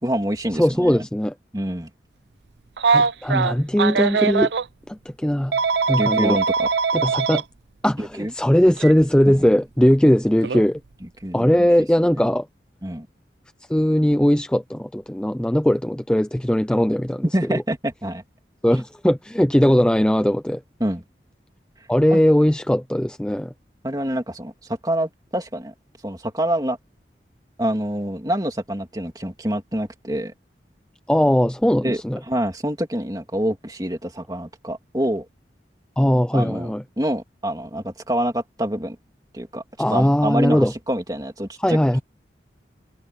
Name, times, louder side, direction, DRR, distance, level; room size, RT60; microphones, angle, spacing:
voice 1, 0.0-1.1 1.5-1.9 6.0-6.7 8.0-8.3 9.3-9.5 11.2-11.7 12.8-13.1 17.3-18.2 20.8-21.0 22.1-22.2 23.8-24.5 24.8-25.7 26.0-26.8 27.6-30.3 31.8-32.0 32.3-35.2 36.3-39.0 39.3-39.6 39.9-41.8, right 1 dB, 20° right, 2.9 m, -26 dB
voice 2, 0.6-1.3 2.9-4.5 4.9-5.6 5.9-6.4 6.9-7.4 7.8-10.8 11.3-12.5 13.7-17.6 18.6-20.6 21.9-23.5 31.1-32.2 36.0-36.8 39.8-40.7 41.6-42.0, equal, 5° left, 0.4 m, -19 dB
Telephone, 2.8-4.7 5.5-7.4 8.8-8.9 10.4-10.6, right 5 dB, 75° right, 0.6 m, -21 dB
head